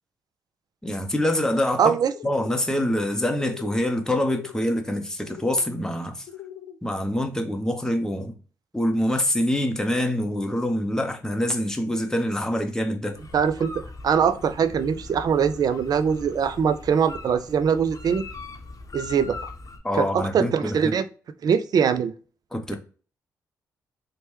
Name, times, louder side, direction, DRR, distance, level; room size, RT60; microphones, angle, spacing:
voice 1, 0.8-1.9 2.2-6.3 6.8-8.3 8.7-13.2 19.8-20.9 22.5-22.8, left 1 dB, 5° left, 0.6 m, -25 dB
voice 2, 1.8-2.1 13.3-13.7 14.0-18.2 18.9-19.4 19.9-21.0 21.4-22.1, right 7 dB, 50° right, 0.4 m, -22 dB
sound 1, 2.1-2.6 3.3-3.8 4.1-4.6 5.3-5.7 6.2-6.8, left 12 dB, 70° left, 0.4 m, -40 dB
sound 2, 13.1-19.8, left 3 dB, 45° left, 0.8 m, -41 dB
2.9 x 2.1 x 3.0 m
hypercardioid pair, 40°, 8 cm